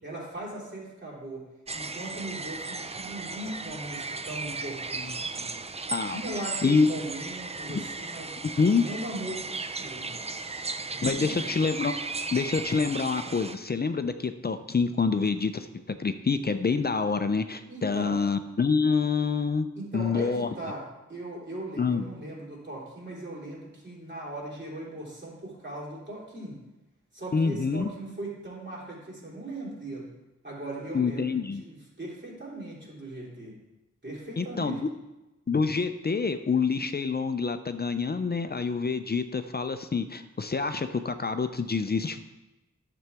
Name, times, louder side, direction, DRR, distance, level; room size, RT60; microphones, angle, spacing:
voice 1, 0.0-1.4 1.7-5.5 6.0-8.3 8.8-10.2 10.9-11.5 17.7-18.1 19.8-20.8 21.1-26.6 27.1-30.1 30.4-33.6 34.0-34.8, right 1 dB, 35° right, -5 dB, 3.5 m, -39 dB
sound 1, 1.7-13.6, right 3 dB, 20° right, 0.4 m, -36 dB
voice 2, 8.4-8.9 11.0-11.9 12.3-15.7 16.0-19.7 19.9-20.5 21.8-22.0 27.3-27.9 30.9-31.6 34.4-34.9 35.5-42.2, left 5 dB, 35° left, 9 dB, 0.5 m, -26 dB
11.0 x 7.0 x 3.5 m, 1.0 s
wide cardioid pair, 75°, 30 cm